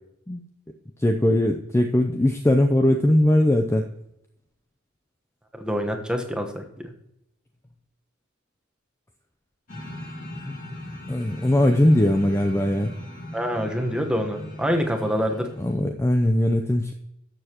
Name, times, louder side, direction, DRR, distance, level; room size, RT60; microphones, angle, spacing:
voice 1, 1.0-3.9 10.5-10.6 11.1-12.9 15.6-16.9, left 1 dB, 15° left, 4 dB, 0.5 m, -20 dB
voice 2, 5.5-6.9 13.3-15.5, equal, 5° right, 3 dB, 1.1 m, -26 dB
sound 1, 9.7-15.9, left 1 dB, 45° left, 2.2 m, -38 dB
13.0 x 7.1 x 3.0 m, 0.81 s
head